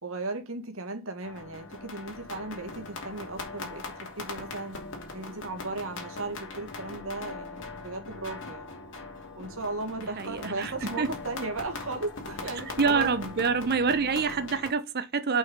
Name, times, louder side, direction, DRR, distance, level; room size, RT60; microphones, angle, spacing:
voice 1, 0.0-4.8 5.1-8.7 9.4-13.1, right 2 dB, 65° right, 1.9 m, -36 dB
sound 1, 1.2-14.7, left 3 dB, 55° left, 2.7 m, -40 dB
voice 2, 10.0-11.1 12.8-15.4, right 5 dB, 45° right, 0.8 m, -27 dB
6.3 x 5.5 x 5.4 m
head